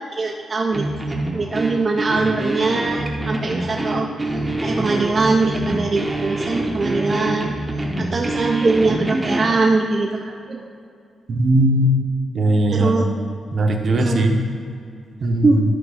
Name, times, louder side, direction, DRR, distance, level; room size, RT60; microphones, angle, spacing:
voice 1, 0.1-7.6 8.0-10.6 12.7-13.1 14.0-14.3 15.4-15.6, right 3 dB, 30° right, 0 dB, 0.5 m, -22 dB
sound 1, 0.7-9.6, right 1 dB, 10° right, 0.8 m, -25 dB
voice 2, 11.3-11.9 12.3-13.0 13.5-14.4 15.2-15.6, right 1 dB, 50° right, 4 dB, 0.8 m, -18 dB
11.5 x 3.9 x 4.8 m, 2.3 s
cardioid pair, 130°, 0 cm